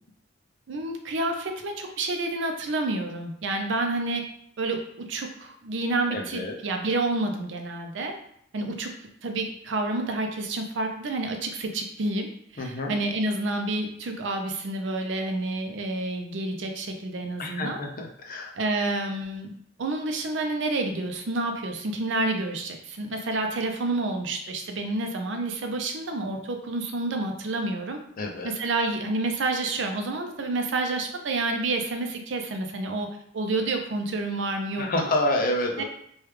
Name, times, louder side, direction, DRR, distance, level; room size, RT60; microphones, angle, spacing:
voice 1, 0.7-4.2 4.6-8.1 8.5-8.9 9.2-17.8 18.6-19.5 19.8-28.0 28.4-35.1 35.8-35.9, right 2 dB, 65° right, 4 dB, 0.5 m, -29 dB
voice 2, 6.1-6.5 12.6-13.0 17.4-18.5 28.2-28.5 34.8-35.8, left 1 dB, 45° left, 2 dB, 0.5 m, -28 dB
3.2 x 2.3 x 3.2 m, 0.68 s
head